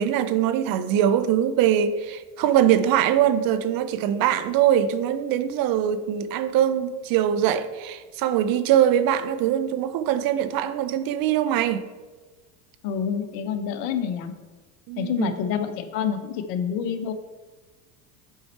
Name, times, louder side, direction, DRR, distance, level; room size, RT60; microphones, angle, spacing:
voice 1, 0.0-11.9 14.9-15.3, right 10 dB, 45° right, 0.6 m, -22 dB
voice 2, 12.8-14.3 15.0-17.1, left 8 dB, 60° left, 0.9 m, -27 dB
7.4 x 4.3 x 4.3 m
hypercardioid pair, 90°, 47 cm